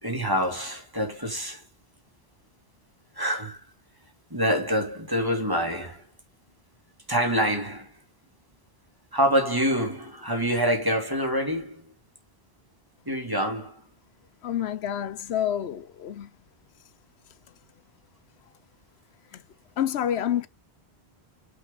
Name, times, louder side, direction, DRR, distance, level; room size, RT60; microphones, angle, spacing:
voice 1, 0.0-1.6 3.2-3.6 4.3-6.0 7.1-7.9 9.1-11.8 13.1-13.8, equal, 20° right, 2.6 m, -26 dB
voice 2, 14.4-16.3 19.3-19.4 19.8-20.5, left 10 dB, 80° left, 0.9 m, -28 dB
9.5 x 5.2 x 3.9 m
omnidirectional pair, 1.1 m